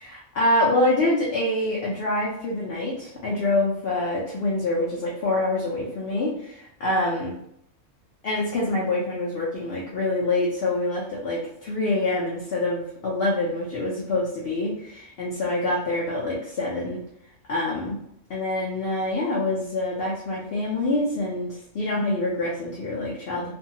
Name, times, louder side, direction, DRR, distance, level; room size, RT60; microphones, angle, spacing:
voice 1, 0.1-7.3 8.2-17.0 17.5-18.0 18.3-23.5, left 2 dB, 60° left, -4 dB, 0.7 m, -26 dB
2.5 x 2.3 x 2.7 m, 0.73 s
omnidirectional pair, 1.4 m